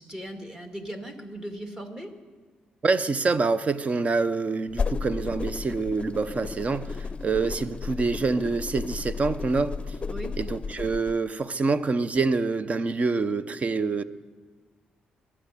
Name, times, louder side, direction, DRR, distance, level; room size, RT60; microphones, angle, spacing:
voice 1, 0.0-2.1 10.1-10.3, right 1 dB, 20° right, 4 dB, 2.2 m, -38 dB
voice 2, 2.8-9.9 10.4-14.0, right 4 dB, 40° right, 14 dB, 0.8 m, -26 dB
sound 1, 4.7-11.2, left 5 dB, 35° left, 0.6 m, -33 dB
23.0 x 8.7 x 6.8 m, 1.4 s
supercardioid pair, 65°, 3 cm